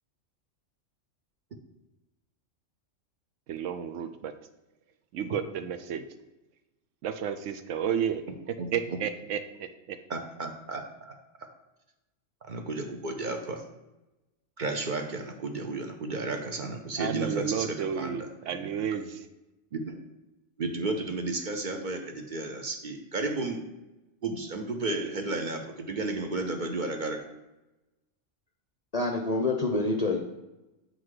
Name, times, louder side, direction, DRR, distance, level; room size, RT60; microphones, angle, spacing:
voice 1, 3.5-4.3 5.1-6.1 7.0-8.2 8.7-10.0 17.0-19.2, right 8 dB, 75° right, 9 dB, 0.9 m, -32 dB
voice 2, 8.6-9.0 10.1-11.2 12.5-13.6 14.6-18.9 19.7-20.0 20.6-23.7 24.2-27.2, right 3 dB, 50° right, 4 dB, 0.7 m, -33 dB
voice 3, 28.9-30.2, left 2 dB, 45° left, 2 dB, 0.5 m, -27 dB
7.6 x 4.0 x 4.8 m, 1.0 s
omnidirectional pair, 1.3 m